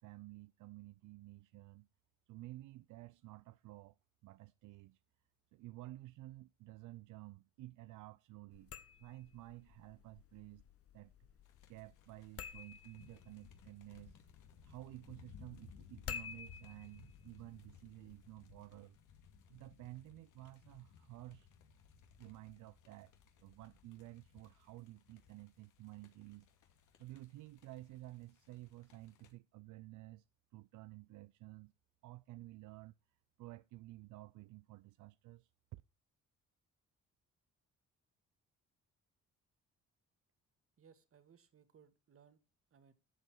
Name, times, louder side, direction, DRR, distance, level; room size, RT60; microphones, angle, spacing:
voice 1, 0.0-1.9 2.3-5.0 5.5-8.7 9.0-10.6 10.9-11.1 11.7-14.2 14.6-19.0 19.5-21.5 22.2-23.1 23.4-26.5 27.0-30.2 30.5-31.7 32.0-32.9 33.4-35.8, right 18 dB, 80° right, 0.5 m, -53 dB
sound 1, 8.5-18.3, left 8 dB, 50° left, 1.0 m, -53 dB
sound 2, 11.4-29.3, left 6 dB, 90° left, 2.2 m, -62 dB
voice 2, 40.8-42.4 42.7-42.9, right 7 dB, 45° right, 1.8 m, -65 dB
12.5 x 7.7 x 4.6 m
cardioid pair, 90°, 30 cm